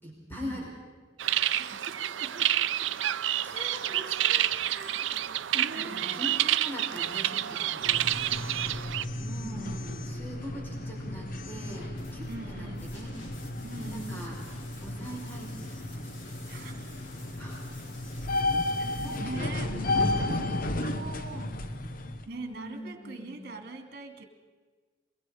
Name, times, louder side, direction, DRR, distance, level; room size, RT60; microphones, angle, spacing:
voice 1, 0.0-0.7 2.4-2.5 3.0-8.1 9.2-13.1 13.8-14.3 14.8-15.9 17.4-18.0 19.0-21.4 22.2-23.4, equal, 10° left, -3 dB, 5.1 m, -42 dB
sound 1, 1.2-9.0, right 12 dB, 80° right, 0.5 m, -28 dB
voice 2, 1.5-2.5 5.5-6.3 8.2-8.8 9.4-10.2 12.3-12.9 13.6-14.3 16.5-17.0 18.8-19.9 20.2-20.5 20.8-21.5 22.3-24.2, right 2 dB, 55° right, 5 dB, 2.5 m, -42 dB
sound 2, 7.8-22.2, left 2 dB, 50° left, 0.9 m, -33 dB
sound 3, 11.7-19.2, left 1 dB, 90° left, 3.8 m, -50 dB
23.5 x 22.5 x 5.0 m, 1.4 s
head